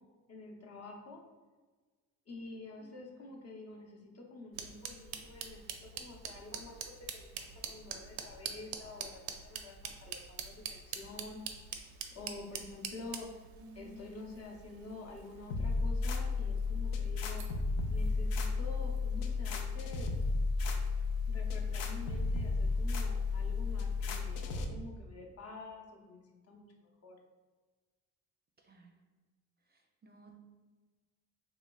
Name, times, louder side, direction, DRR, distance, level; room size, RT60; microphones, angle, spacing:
voice 1, 0.3-1.2 2.3-11.4 12.1-13.4 13.7-17.4 17.9-20.1 21.3-26.7 27.0-27.2, left 2 dB, 45° left, 0 dB, 0.7 m, -48 dB
voice 2, 2.8-3.5 13.2-13.3 13.6-14.3 28.6-28.9 29.7-30.3, right 1 dB, 30° right, 1 dB, 0.4 m, -56 dB
sound 1, 4.5-24.5, right 7 dB, 85° right, 0.5 m, -47 dB
sound 2, 15.5-24.7, left 4 dB, 80° left, 0.6 m, -33 dB
3.2 x 3.0 x 2.3 m, 1.3 s
cardioid pair, 85°, 36 cm